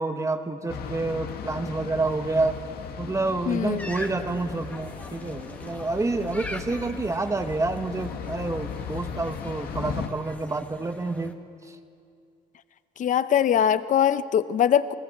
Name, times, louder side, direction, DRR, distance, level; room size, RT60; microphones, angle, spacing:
voice 1, 0.0-2.6 3.0-11.4 11.7-11.8, right 3 dB, 20° right, 7 dB, 1.4 m, -28 dB
sound 1, 0.7-10.1, left 8 dB, 65° left, 2.0 m, -37 dB
voice 2, 3.5-3.9 13.0-14.9, left 9 dB, 50° left, 14 dB, 0.9 m, -22 dB
sound 2, 3.8-11.3, left 1 dB, 10° left, 1.7 m, -43 dB
28.5 x 20.0 x 8.0 m, 2.4 s
cardioid pair, 110°, 17 cm